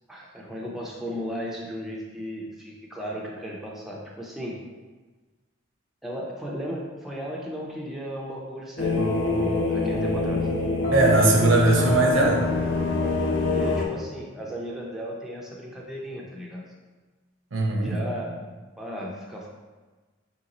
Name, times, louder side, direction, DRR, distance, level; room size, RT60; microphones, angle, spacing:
voice 1, 0.1-4.6 6.0-9.1 9.4-10.5 13.5-16.7 17.8-19.5, equal, ahead, -4 dB, 0.4 m, -35 dB
sound 1, 8.8-13.8, left 2 dB, 65° left, 0.6 m, -24 dB
voice 2, 10.9-12.5 17.5-18.0, right 2 dB, 75° right, 0 dB, 0.7 m, -20 dB
3.2 x 2.9 x 3.9 m, 1.3 s
head